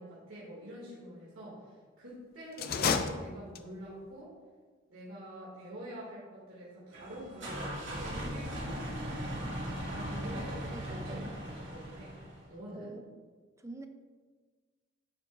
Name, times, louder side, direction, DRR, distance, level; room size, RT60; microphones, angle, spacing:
voice 1, 0.0-4.3 4.9-9.5 9.9-12.2 12.5-12.9, equal, 85° right, -7 dB, 2.4 m, -46 dB
sound 1, 2.5-3.9, left 5 dB, 50° left, 0.5 m, -31 dB
sound 2, 6.9-12.5, equal, 65° right, 2.4 m, -38 dB
voice 2, 10.1-11.3 12.7-13.1 13.6-13.9, right 2 dB, 15° right, 6 dB, 0.6 m, -46 dB
9.9 x 7.9 x 2.6 m, 1.5 s
head